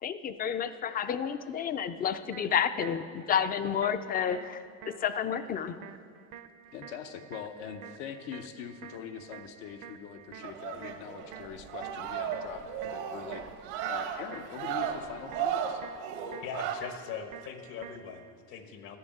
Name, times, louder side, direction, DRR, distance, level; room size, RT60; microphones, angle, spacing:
voice 1, 0.0-5.9, left 8 dB, 25° left, 12 dB, 0.4 m, -30 dB
sound 1, 2.3-18.3, right 9 dB, 60° right, 0.6 m, -50 dB
voice 2, 6.7-15.8, left 8 dB, 85° left, 8 dB, 1.0 m, -43 dB
sound 2, 10.4-16.8, right 8 dB, 85° right, 1.2 m, -35 dB
voice 3, 16.4-19.0, left 7 dB, 70° left, 7 dB, 1.3 m, -41 dB
11.5 x 7.2 x 7.7 m, 2.3 s
cardioid pair, 135°, 37 cm